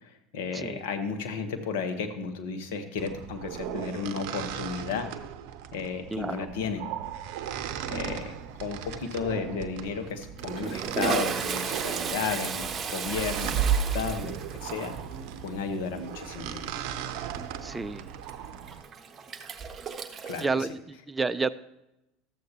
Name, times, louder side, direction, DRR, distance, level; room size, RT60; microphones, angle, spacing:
voice 1, 0.0-5.1 5.7-6.8 7.9-8.3 8.6-14.3 14.6-14.9 15.4-16.7 20.2-20.5, left 5 dB, 70° left, 7 dB, 1.1 m, -33 dB
voice 2, 0.5-0.8 6.1-6.5 17.6-18.0 20.4-21.5, right 4 dB, 15° right, 12 dB, 0.4 m, -30 dB
sound 1, 3.0-18.8, right 8 dB, 65° right, 0.6 m, -35 dB
Toilet flush, 8.2-8.6 8.9-9.0 10.0-20.5, right 6 dB, 35° right, 0.8 m, -35 dB
12.5 x 7.9 x 2.9 m, 0.89 s
hypercardioid pair, 80°, 0 cm